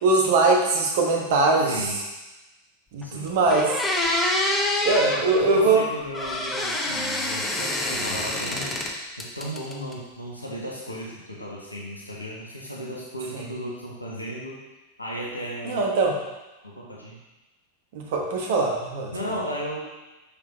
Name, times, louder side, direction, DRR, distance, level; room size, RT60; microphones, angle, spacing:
voice 1, 0.0-1.7 2.9-3.8 4.8-5.8 13.3-13.4 15.6-16.2 17.9-19.1, right 3 dB, 50° right, 1 dB, 1.2 m, -21 dB
voice 2, 1.6-2.0 3.0-3.4 4.8-14.6 15.0-15.8 16.6-17.2 19.1-19.8, equal, 85° left, -4 dB, 1.3 m, -35 dB
sound 1, 3.0-3.1 3.5-5.2 6.1-8.9 9.2-9.9, left 1 dB, 15° left, 0.9 m, -26 dB
6.7 x 5.9 x 3.1 m, 1.1 s
figure-of-eight pair, 90°, 0 cm